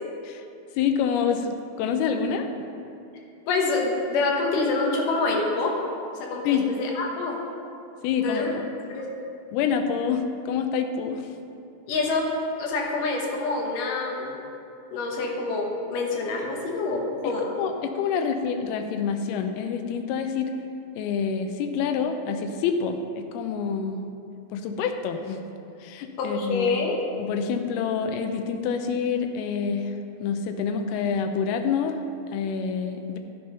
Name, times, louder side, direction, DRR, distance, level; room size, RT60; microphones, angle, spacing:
voice 1, 0.8-1.5 1.8-2.5 6.5-6.7 8.0-8.6 9.5-11.3 17.2-20.5 21.0-24.0 24.5-25.4 25.8-26.7 27.2-29.9 30.2-32.0 32.3-33.2, left 6 dB, 85° left, 6 dB, 2.6 m, -27 dB
voice 2, 3.5-5.7 6.3-7.4 8.2-8.5 8.9-9.1 11.9-14.3 14.9-17.6 26.2-27.0, left 3 dB, 65° left, -1 dB, 2.5 m, -26 dB
11.0 x 7.0 x 5.4 m, 2.6 s
omnidirectional pair, 4.5 m